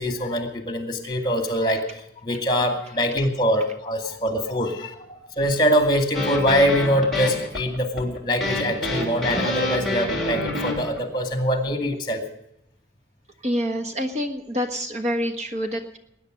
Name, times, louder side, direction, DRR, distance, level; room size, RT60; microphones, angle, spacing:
voice 1, 0.0-1.9 2.2-12.2, equal, 25° left, 6 dB, 2.3 m, -23 dB
sound 1, 6.1-11.0, left 1 dB, ahead, 3.3 m, -27 dB
voice 2, 13.4-16.0, equal, 35° right, 6 dB, 1.4 m, -27 dB
20.0 x 10.0 x 6.5 m, 0.80 s
head